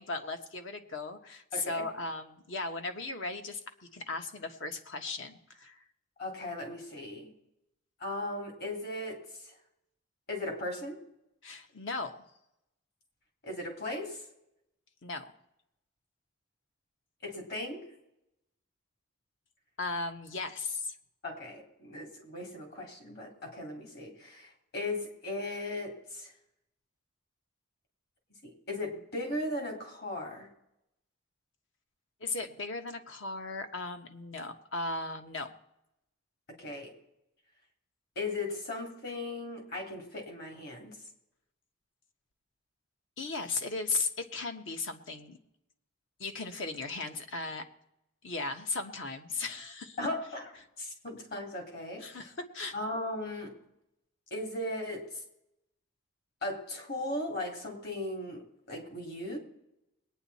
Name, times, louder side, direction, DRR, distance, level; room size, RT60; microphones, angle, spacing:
voice 1, 0.0-3.6 3.9-5.8 11.4-12.2 15.0-15.3 19.8-20.9 32.2-35.5 43.2-45.4 46.2-47.7 48.2-50.0 52.0-52.8, left 3 dB, 65° left, 7 dB, 1.2 m, -36 dB
voice 2, 1.5-1.9 6.2-7.3 8.0-9.5 10.3-11.0 13.4-14.2 17.2-17.9 21.2-26.3 28.4-30.5 36.5-36.9 38.1-41.0 50.0-50.4 50.8-52.3 52.7-53.5 54.3-55.1 56.4-58.4 58.7-59.4, left 1 dB, 50° left, 2 dB, 3.2 m, -37 dB
21.0 x 9.3 x 4.2 m, 0.85 s
head